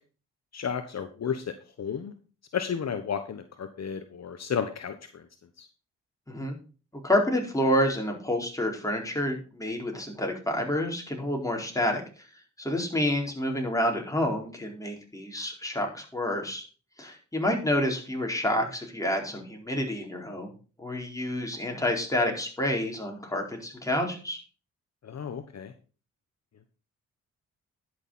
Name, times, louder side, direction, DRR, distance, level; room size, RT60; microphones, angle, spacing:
voice 1, 0.5-1.4 1.8-2.1 2.5-4.9 5.6-5.7 25.0-25.7, left 7 dB, 55° left, 8 dB, 1.1 m, -32 dB
voice 2, 7.0-12.0 12.6-16.6 17.0-20.5 20.8-24.4, left 1 dB, 10° left, 1 dB, 4.2 m, -28 dB
10.5 x 6.4 x 5.6 m, 0.37 s
supercardioid pair, 55°, 32 cm